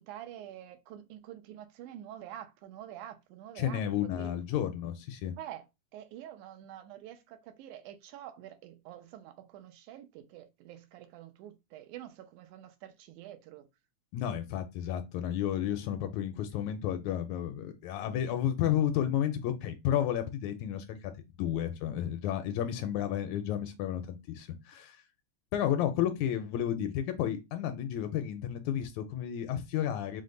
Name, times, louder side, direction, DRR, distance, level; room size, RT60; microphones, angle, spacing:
voice 1, 0.0-4.3 5.4-5.6 5.9-13.7, right 11 dB, 80° right, 2.1 m, -47 dB
voice 2, 3.6-5.3 14.1-21.1 21.4-25.0 25.5-30.2, left 10 dB, 80° left, 1.8 m, -32 dB
5.2 x 2.1 x 3.7 m
omnidirectional pair, 3.5 m